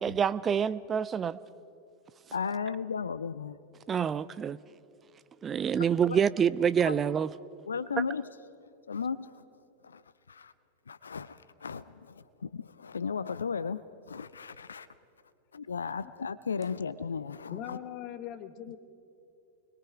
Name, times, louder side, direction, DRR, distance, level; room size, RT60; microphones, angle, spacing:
voice 1, 0.0-1.4 3.9-4.6 5.4-7.3, right 7 dB, 20° right, 0.4 m, -27 dB
voice 2, 2.3-3.6 6.1-6.2 6.8-7.0 7.7-8.3 8.9-9.4 9.8-10.0 10.3-10.5 10.9-14.9 15.5-17.8, left 6 dB, 70° left, 0.5 m, -35 dB
voice 3, 17.5-18.8, left 11 dB, 40° left, 1.3 m, -40 dB
29.5 x 22.0 x 4.7 m
figure-of-eight pair, 90°, 0 cm